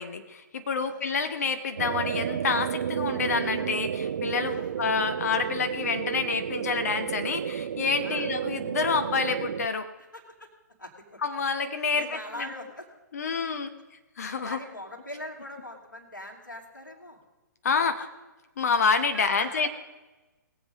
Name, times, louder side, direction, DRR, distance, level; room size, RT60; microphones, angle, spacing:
voice 1, 0.0-9.9 11.2-12.2 13.1-13.7 14.2-14.6 17.6-18.0 18.6-19.7, left 5 dB, 55° left, 9 dB, 1.0 m, -28 dB
voice 2, 0.8-1.3 4.4-4.8 8.0-8.3 10.0-10.5 10.8-11.2 11.9-12.9 14.2-17.2 17.7-18.1 19.1-19.7, left 1 dB, 75° left, 0 dB, 2.9 m, -42 dB
sound 1, 1.8-9.7, right 8 dB, 50° right, 0.4 m, -31 dB
21.0 x 7.6 x 5.0 m, 1.1 s
figure-of-eight pair, 125°, 10 cm